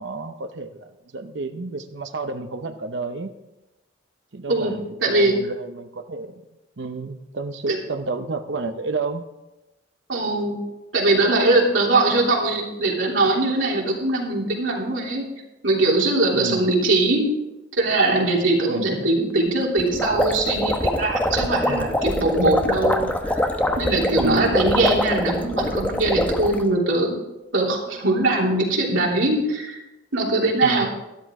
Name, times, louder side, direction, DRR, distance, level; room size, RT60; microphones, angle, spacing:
voice 1, 0.0-3.3 4.3-6.4 6.8-9.2 16.3-16.6 18.7-18.9 21.5-21.9 24.1-24.5 30.6-30.9, right 3 dB, 70° right, 7 dB, 0.8 m, -30 dB
voice 2, 5.0-5.3 7.7-7.8 10.1-10.6 10.9-15.2 15.6-17.2 17.8-23.5 23.8-27.2 27.5-29.8 30.1-30.9, right 2 dB, 85° right, -3 dB, 3.2 m, -21 dB
sound 1, 19.8-26.6, left 1 dB, 10° left, 0.9 m, -23 dB
13.0 x 11.5 x 3.7 m, 0.96 s
head